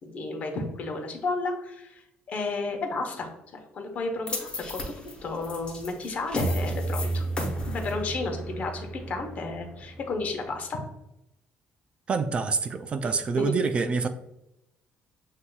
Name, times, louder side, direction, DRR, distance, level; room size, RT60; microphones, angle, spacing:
voice 1, 0.0-7.3 7.7-10.8 13.0-13.6, left 3 dB, 45° left, 3 dB, 0.9 m, -33 dB
sound 1, 4.3-10.5, right 1 dB, 30° left, 1.2 m, -32 dB
voice 2, 12.1-14.1, right 4 dB, 30° right, 8 dB, 0.3 m, -26 dB
7.7 x 2.8 x 2.3 m, 0.85 s
cardioid pair, 150°, 4 cm